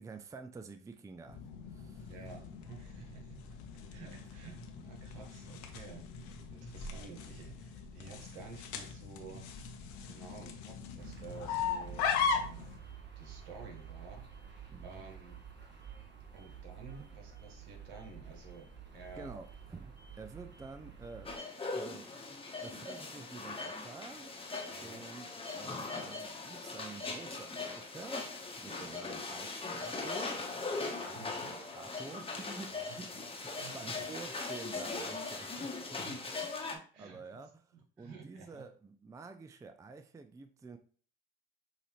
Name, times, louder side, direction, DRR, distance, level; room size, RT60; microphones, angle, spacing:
voice 1, 0.0-1.4 1.7-2.1 6.4-6.6 14.7-15.0 19.1-21.3 21.7-22.1 22.6-24.3 24.8-30.6 31.0-36.4 36.7-40.8, right 4 dB, 10° right, 0.4 m, -49 dB
sound 1, 1.3-12.8, left 6 dB, 65° left, 0.9 m, -39 dB
voice 2, 2.1-3.6 3.9-9.4 10.0-12.7 13.1-14.2 14.8-15.4 16.3-18.7 18.9-19.3 24.7-25.0 31.1-31.5 32.7-33.0 33.5-34.1 36.0-36.2 36.9-37.4 37.7-38.6, right 4 dB, 70° right, 1.4 m, -51 dB
sound 2, 11.0-21.4, right 7 dB, 35° right, 1.3 m, -50 dB
sound 3, 21.3-36.8, left 3 dB, 20° left, 1.1 m, -40 dB
6.3 x 2.7 x 3.1 m
hypercardioid pair, 65°, 31 cm